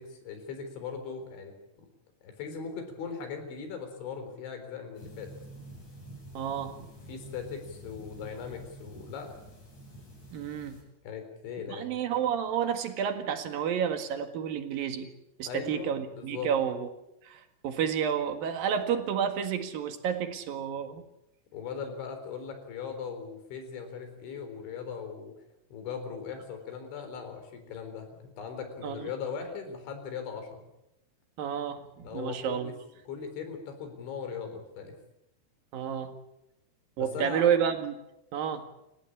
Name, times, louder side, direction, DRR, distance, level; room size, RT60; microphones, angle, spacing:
voice 1, 0.0-1.5 2.2-5.3 7.1-9.4 11.0-12.0 15.5-16.5 21.5-25.3 25.7-30.7 32.0-32.7 33.1-35.0 37.0-37.5, left 6 dB, 70° left, 7 dB, 6.3 m, -39 dB
sound 1, 5.0-10.8, right 1 dB, 35° left, 9.0 m, -48 dB
voice 2, 6.3-6.8 10.3-10.8 11.7-15.1 15.4-16.9 17.2-21.1 28.8-29.1 31.4-32.7 35.7-36.2 37.0-37.9 38.3-38.7, right 8 dB, 55° right, 7 dB, 3.1 m, -30 dB
29.0 x 15.5 x 8.6 m, 0.86 s
omnidirectional pair, 5.6 m